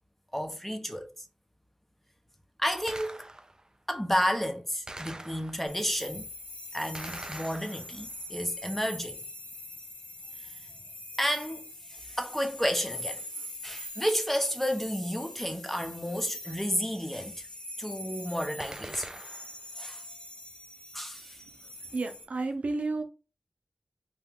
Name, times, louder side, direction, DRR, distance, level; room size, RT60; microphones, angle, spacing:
voice 1, 0.3-1.1 2.6-3.3 3.9-6.3 6.7-9.2 10.4-10.6 11.2-17.5 17.8-19.1 19.8-20.0 20.9-21.4, equal, 10° left, 0.7 m, -31 dB
Gunshot gunfire, 2.9-3.7 4.9-5.9 6.9-8.2 18.6-19.7, right 1 dB, 30° right, 0.3 m, -43 dB
sound 1, 5.7-22.2, left 1 dB, 85° left, 0.9 m, -43 dB
voice 2, 21.9-23.0, right 3 dB, 85° right, 0.5 m, -31 dB
2.8 x 2.2 x 3.6 m
wide cardioid pair, 45°, 2 cm